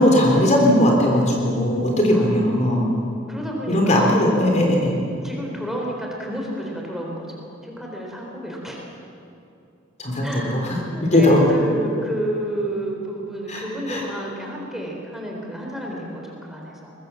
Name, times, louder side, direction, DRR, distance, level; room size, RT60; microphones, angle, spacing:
voice 1, 0.0-2.9 3.7-5.0 10.0-10.6 11.1-11.4 13.5-14.0, left 1 dB, 35° left, 0 dB, 3.6 m, -18 dB
voice 2, 2.1-2.5 3.3-4.1 5.2-8.8 10.2-16.9, right 1 dB, ahead, -1 dB, 4.0 m, -30 dB
23.5 x 21.0 x 7.3 m, 2.7 s
head